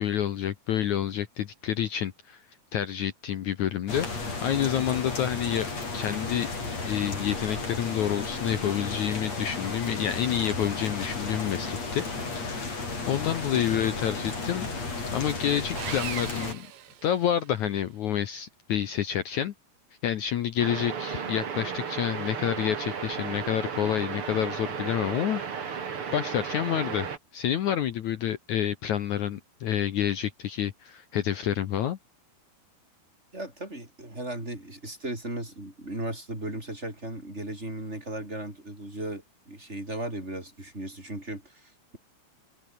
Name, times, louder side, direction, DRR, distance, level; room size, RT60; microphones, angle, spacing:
voice 1, 0.0-2.4 2.7-5.7 5.9-6.5 6.9-12.0 12.4-16.7 17.0-19.5 20.0-32.0, left 10 dB, 65° left, 1.9 m, -29 dB
sound 1, 3.9-16.5, left 3 dB, 40° left, 7.5 m, -33 dB
Sawing, 15.8-17.7, right 11 dB, 65° right, 3.2 m, -39 dB
sound 2, 20.6-27.2, right 6 dB, 40° right, 2.6 m, -34 dB
voice 2, 33.3-42.0, right 1 dB, 15° right, 8.0 m, -36 dB
omnidirectional pair, 4.7 m